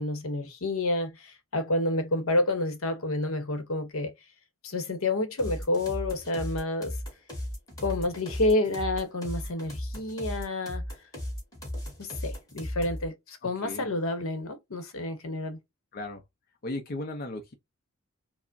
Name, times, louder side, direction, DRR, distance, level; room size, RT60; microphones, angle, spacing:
voice 1, 0.0-4.1 4.6-7.0 7.8-10.8 12.0-15.6, left 2 dB, 70° left, 0.9 m, -29 dB
sound 1, 5.4-13.1, left 1 dB, 20° left, 2.0 m, -36 dB
voice 2, 13.4-13.9 15.9-16.2 16.6-17.5, left 2 dB, 45° left, 0.6 m, -36 dB
4.7 x 2.0 x 2.5 m
head